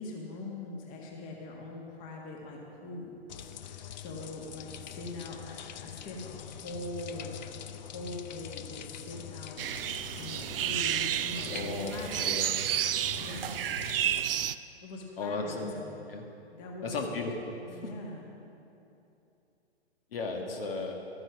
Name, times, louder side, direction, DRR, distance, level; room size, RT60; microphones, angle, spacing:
voice 1, 0.0-7.3 7.8-12.3 13.1-13.7 14.8-16.0 16.5-16.9 17.7-18.3, left 2 dB, 25° left, -1 dB, 1.6 m, -42 dB
sound 1, 3.3-14.2, left 10 dB, 40° left, 0.5 m, -44 dB
sound 2, 9.6-14.6, right 11 dB, 55° right, 0.5 m, -31 dB
voice 2, 11.5-12.0 12.2-12.5 15.2-15.7 16.1-16.2 16.8-17.8 20.1-20.9, left 3 dB, 55° left, 2 dB, 1.7 m, -35 dB
12.5 x 9.5 x 6.0 m, 2.8 s
hypercardioid pair, 130°, 33 cm